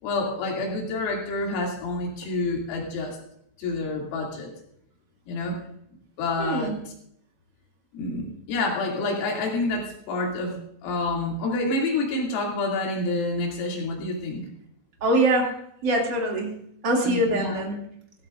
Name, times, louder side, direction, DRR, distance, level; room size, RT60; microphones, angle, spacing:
voice 1, 0.0-3.2 3.6-4.5 5.3-5.6 6.2-6.8 7.9-14.5 17.0-17.6, left 2 dB, 80° left, -1 dB, 5.2 m, -28 dB
voice 2, 6.4-6.7 15.0-15.5 15.8-16.5 16.8-17.8, right 1 dB, 40° right, -1 dB, 1.7 m, -23 dB
16.5 x 15.5 x 2.5 m, 0.72 s
omnidirectional pair, 6.0 m